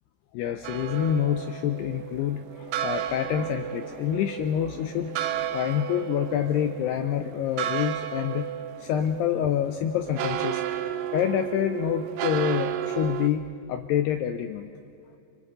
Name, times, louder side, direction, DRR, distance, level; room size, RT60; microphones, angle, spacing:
voice 1, 0.3-5.1 5.5-8.5 8.8-10.6 11.1-14.7, left 10 dB, 85° left, 7 dB, 2.3 m, -27 dB
sound 1, 0.6-13.3, right 10 dB, 80° right, 2.7 m, -33 dB
30.0 x 26.0 x 3.9 m, 2.7 s
omnidirectional pair, 5.4 m